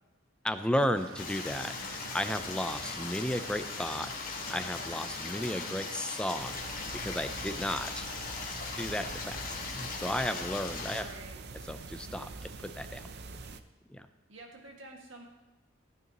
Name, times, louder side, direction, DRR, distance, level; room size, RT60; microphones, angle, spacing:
voice 1, 0.4-8.1 8.7-11.0 11.7-13.1 13.9-14.1, left 1 dB, 5° left, 8 dB, 0.5 m, -34 dB
sound 1, 0.9-6.0, right 3 dB, 90° right, 0.9 m, -48 dB
Stream, 1.2-11.0, left 4 dB, 45° left, 1.6 m, -39 dB
sound 2, 6.4-13.6, right 3 dB, 55° right, 0.5 m, -44 dB
voice 2, 11.0-11.4 14.3-15.3, right 1 dB, 70° right, 1 dB, 2.0 m, -48 dB
15.5 x 9.3 x 3.0 m, 1.1 s
head